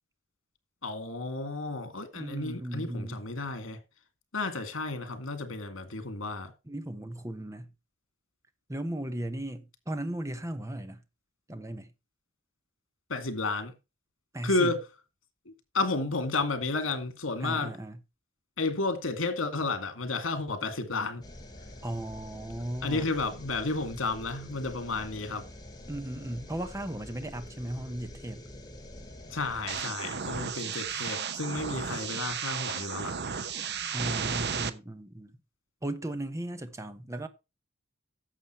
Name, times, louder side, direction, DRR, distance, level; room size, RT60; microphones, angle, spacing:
voice 1, 0.8-3.8 4.3-6.5 13.1-13.7 14.4-14.8 15.7-17.7 18.6-21.2 22.8-25.4 29.3-33.1, left 3 dB, 80° left, 2.2 m, -32 dB
voice 2, 2.1-3.2 6.6-7.7 8.7-11.0 11.5-11.9 14.3-14.8 17.4-18.0 21.8-23.1 25.9-28.5 33.9-35.3 35.8-37.3, right 1 dB, 15° right, 1.0 m, -36 dB
sound 1, 21.2-29.8, left 1 dB, 20° left, 2.4 m, -46 dB
sound 2, 29.7-34.7, right 6 dB, 55° right, 0.9 m, -34 dB
11.5 x 7.1 x 4.4 m
head